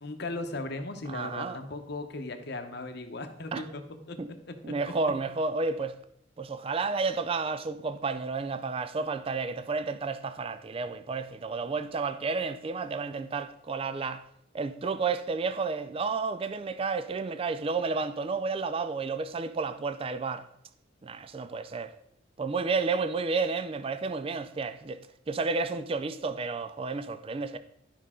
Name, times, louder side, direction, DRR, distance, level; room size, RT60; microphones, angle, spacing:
voice 1, 0.0-4.2 4.5-4.8, left 2 dB, 55° left, 0.9 m, -37 dB
voice 2, 1.1-1.6 3.5-3.6 4.2-4.3 4.6-5.9 6.4-14.2 14.5-20.5 21.0-21.9 22.4-25.0 25.3-27.6, right 4 dB, 30° right, 0.3 m, -31 dB
11.5 x 5.4 x 3.7 m
head